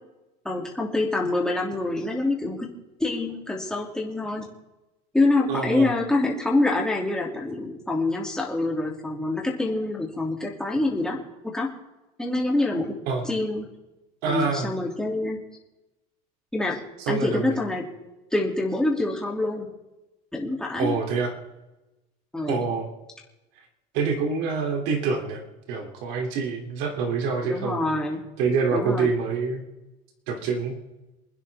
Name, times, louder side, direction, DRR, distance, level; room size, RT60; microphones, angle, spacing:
voice 1, 0.4-2.7 3.0-4.5 5.1-11.2 11.4-11.7 12.2-12.9 13.2-13.7 14.3-15.4 16.5-16.8 17.1-17.8 18.3-19.7 20.3-20.9 22.3-22.6 27.4-28.2 28.7-29.1, left 2 dB, 5° left, -2 dB, 2.9 m, -26 dB
voice 2, 5.5-5.9 13.1-13.2 14.2-14.7 17.1-17.6 20.8-21.3 22.5-22.9 23.9-27.8 28.4-29.6 30.3-30.8, right 5 dB, 65° right, 2 dB, 3.2 m, -26 dB
28.5 x 10.0 x 3.6 m, 1.0 s
cardioid pair, 155°, 18 cm